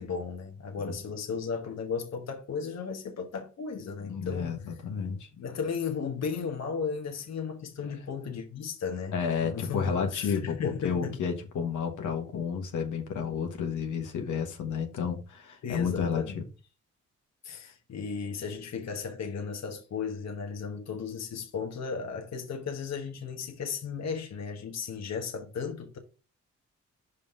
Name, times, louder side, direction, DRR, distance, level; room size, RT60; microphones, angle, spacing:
voice 1, 0.0-4.5 5.3-9.2 9.4-11.2 15.6-16.4 17.4-26.0, left 6 dB, 65° left, 1.3 m, -35 dB
voice 2, 4.0-5.3 7.8-7.9 9.1-16.4, left 6 dB, 85° left, 1.4 m, -31 dB
5.4 x 4.2 x 5.4 m
cardioid pair, 70°, 29 cm